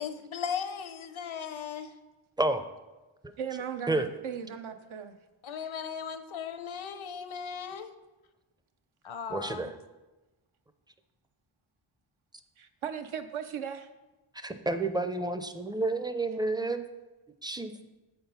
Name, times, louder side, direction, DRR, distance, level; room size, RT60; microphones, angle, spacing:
voice 1, 0.0-2.0 5.4-7.9 9.0-9.7, left 7 dB, 70° left, 10 dB, 0.7 m, -37 dB
voice 2, 3.4-5.2 12.6-13.9, right 8 dB, 75° right, 7 dB, 0.7 m, -37 dB
voice 3, 9.3-9.7 14.4-16.8 17.4-17.7, right 2 dB, 10° right, 9 dB, 0.5 m, -30 dB
7.6 x 4.5 x 5.5 m, 1.1 s
cardioid pair, 75°, 49 cm